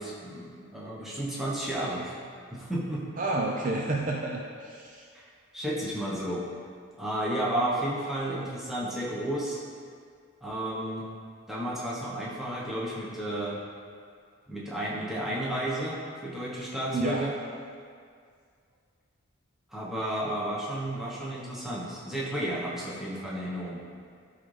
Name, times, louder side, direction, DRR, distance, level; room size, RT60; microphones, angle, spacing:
voice 1, 0.0-2.2 2.5-3.0 5.1-5.3 5.5-6.4 7.0-9.6 10.4-11.1 11.5-13.6 14.5-17.4 19.7-23.8, right 1 dB, ahead, -6 dB, 1.1 m, -32 dB
voice 2, 3.2-5.1 16.9-17.3, right 2 dB, 35° right, -1 dB, 0.4 m, -30 dB
11.5 x 4.0 x 3.3 m, 2.2 s
head